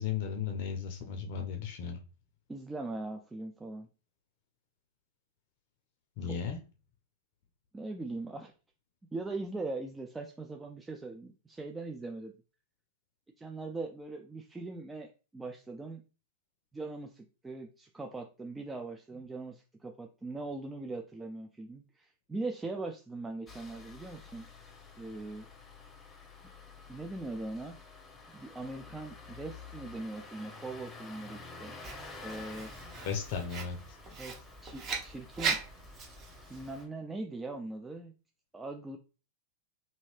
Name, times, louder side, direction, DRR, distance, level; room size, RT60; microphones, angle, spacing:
voice 1, 0.0-2.0 6.2-6.6 32.8-34.0, left 7 dB, 50° left, 4 dB, 0.5 m, -35 dB
voice 2, 2.5-3.9 6.2-6.4 7.7-8.5 9.1-12.3 13.4-16.0 16.7-24.5 25.0-25.5 26.9-27.8 28.3-31.7 32.2-32.7 34.2-35.6 36.5-38.1 38.5-39.0, right 2 dB, 10° right, 3 dB, 0.3 m, -40 dB
Engine starting, 23.5-36.9, left 4 dB, 15° left, 0.7 m, -50 dB
Writing, 31.8-36.8, right 5 dB, 30° right, 0.9 m, -39 dB
2.7 x 2.7 x 3.1 m, 0.35 s
figure-of-eight pair, 95°, 0 cm